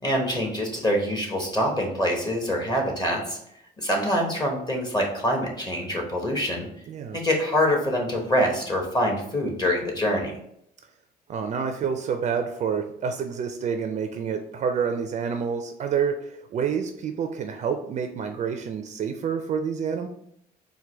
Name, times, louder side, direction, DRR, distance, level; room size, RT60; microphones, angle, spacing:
voice 1, 0.0-3.4 3.8-6.7 7.1-10.3, equal, 25° left, 1 dB, 1.0 m, -25 dB
voice 2, 6.9-7.2 11.3-20.1, right 6 dB, 45° right, 6 dB, 0.4 m, -28 dB
4.6 x 2.2 x 4.3 m, 0.74 s
cardioid pair, 110°, 17 cm